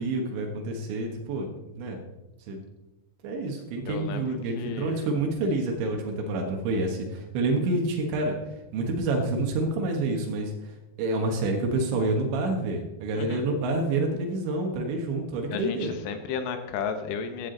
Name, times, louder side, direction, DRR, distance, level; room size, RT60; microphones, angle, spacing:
voice 1, 0.0-1.5 1.8-2.0 2.5-2.6 3.2-8.3 8.7-10.7 11.0-16.0, right 2 dB, 90° right, 2 dB, 3.8 m, -28 dB
voice 2, 3.9-5.1 13.1-13.5 15.5-17.5, left 6 dB, 80° left, 8 dB, 3.3 m, -34 dB
15.0 x 11.0 x 3.9 m, 1.0 s
omnidirectional pair, 5.1 m